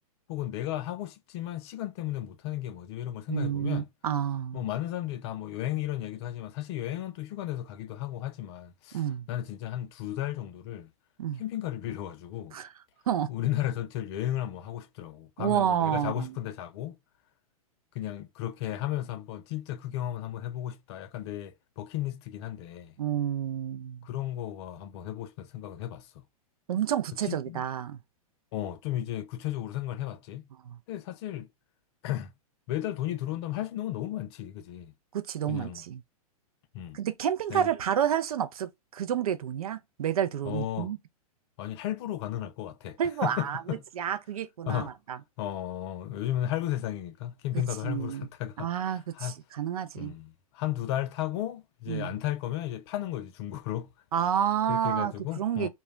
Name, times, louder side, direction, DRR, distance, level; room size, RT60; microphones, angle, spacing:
voice 1, 0.3-3.9 4.5-9.0 9.3-10.9 11.4-12.6 13.3-16.9 17.9-22.9 24.0-26.1 27.3-27.6 28.5-30.4 30.9-31.5 32.0-32.3 32.7-34.9 35.5-35.8 36.7-37.0 37.5-37.7 40.4-40.9 41.6-43.8 44.7-44.9 45.4-48.7 49.2-49.4 50.0-53.9 54.7-55.7, left 13 dB, 45° left, 0.4 m, -34 dB
voice 2, 3.3-4.6 8.9-9.3 11.2-11.4 12.5-12.7 13.1-13.3 15.4-16.4 23.0-24.1 26.7-28.0 30.6-30.8 35.1-36.0 36.9-41.0 43.0-43.6 44.0-45.2 47.5-48.3 48.6-50.1 51.9-52.2 54.1-55.7, right 9 dB, 70° right, 0.5 m, -30 dB
2.2 x 2.0 x 3.4 m
hypercardioid pair, 110°, 19 cm